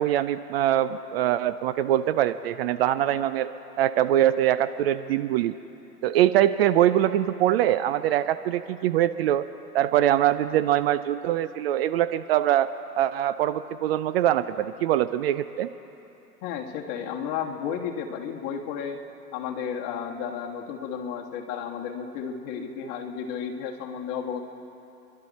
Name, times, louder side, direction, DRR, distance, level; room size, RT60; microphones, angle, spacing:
voice 1, 0.0-3.5 3.8-5.5 6.0-9.4 9.7-12.7 13.0-15.7, right 12 dB, 40° right, 13 dB, 0.4 m, -23 dB
voice 2, 16.4-19.0 19.3-24.4, left 7 dB, 40° left, 2 dB, 1.7 m, -33 dB
27.5 x 12.0 x 4.2 m, 2.9 s
hypercardioid pair, 115°, 47 cm